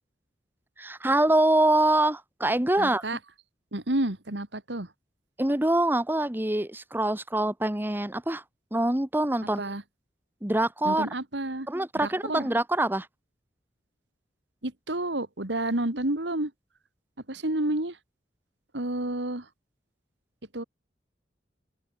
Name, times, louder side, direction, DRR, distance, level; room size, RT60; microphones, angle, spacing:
voice 1, 0.8-3.0 5.4-8.4 8.7-9.6 10.4-11.1 11.7-13.1, right 1 dB, 10° right, 1.1 m, -24 dB
voice 2, 2.8-3.2 3.7-4.9 9.6-9.8 10.8-11.7 12.0-12.5 14.6-16.5 17.3-18.0 18.7-19.5 20.5-20.6, right 1 dB, 75° right, 2.8 m, -30 dB
open air
head